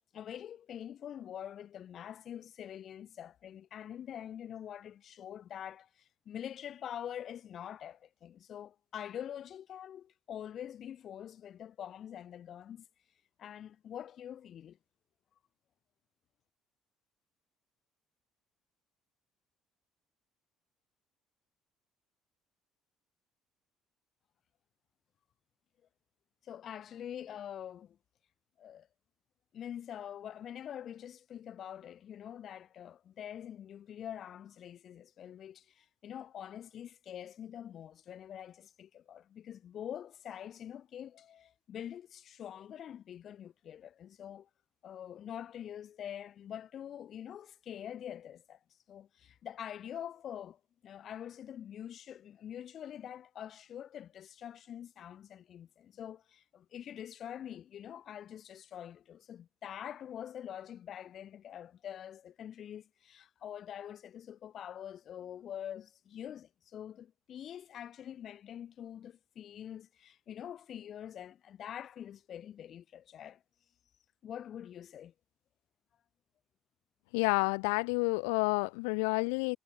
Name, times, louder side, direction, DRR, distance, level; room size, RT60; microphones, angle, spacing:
voice 1, 0.1-12.9 13.4-14.8 26.4-28.0 28.6-28.9 29.5-44.5 44.8-48.6 48.9-73.4 74.2-75.1, left 10 dB, 55° left, 6.1 m, -45 dB
voice 2, 77.1-79.6, left 35 dB, 85° left, 1.0 m, -29 dB
hypercardioid pair, 65°, 0 cm